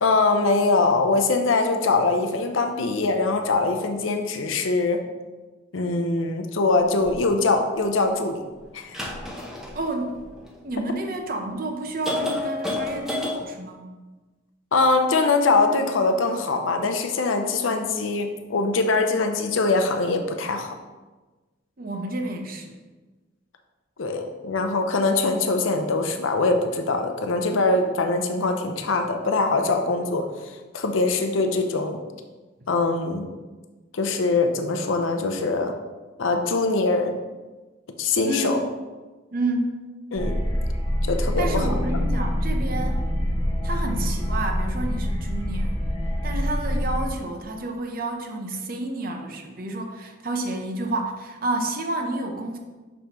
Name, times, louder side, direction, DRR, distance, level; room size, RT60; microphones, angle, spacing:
voice 1, 0.0-5.0 5.7-8.4 8.7-9.0 14.7-20.7 24.0-32.0 32.7-33.3 33.9-35.7 36.2-37.2 38.0-38.6 40.1-40.4 41.0-41.7, left 3 dB, 90° left, 5 dB, 0.6 m, -23 dB
sound 1, 7.0-7.1 8.8-10.7 11.4-11.5 12.0-13.4, left 2 dB, ahead, 0.8 m, -30 dB
voice 2, 9.7-10.2 10.6-13.9 21.8-22.7 38.2-38.6 39.3-39.7 41.4-43.0 43.6-45.8 46.2-52.6, right 2 dB, 45° right, 3 dB, 0.7 m, -30 dB
sound 2, 40.2-47.0, equal, 25° left, 1.0 m, -25 dB
6.1 x 5.4 x 3.0 m, 1.2 s
head